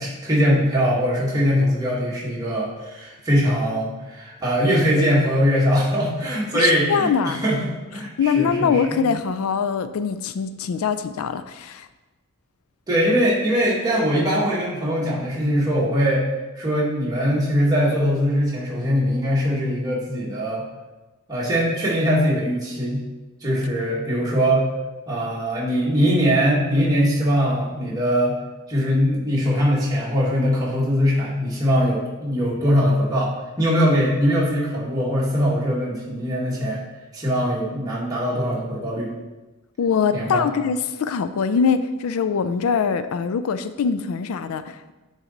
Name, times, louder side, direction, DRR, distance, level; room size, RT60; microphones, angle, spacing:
voice 1, 0.0-9.0 12.9-16.3 16.6-20.6 21.3-23.0 23.4-24.7 25.1-28.4 28.7-33.3 33.6-36.8 37.1-39.1 40.1-40.5, equal, 15° right, -6 dB, 1.7 m, -21 dB
voice 2, 6.5-7.4 8.2-11.9 39.8-44.9, left 6 dB, 85° left, 11 dB, 0.4 m, -23 dB
9.1 x 4.0 x 3.9 m, 1.1 s
head